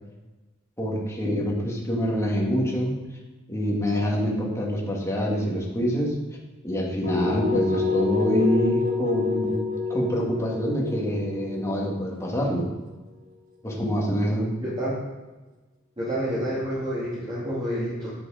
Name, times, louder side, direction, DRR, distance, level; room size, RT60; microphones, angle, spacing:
voice 1, 0.8-2.9 3.5-6.1 6.6-12.7 13.6-14.5, equal, 15° left, -2 dB, 2.0 m, -26 dB
sound 1, 7.0-12.9, left 4 dB, 85° right, 2.2 m, -28 dB
voice 2, 14.6-15.0 16.0-18.1, equal, 25° right, -9 dB, 2.4 m, -28 dB
10.0 x 6.5 x 5.0 m, 1.2 s
head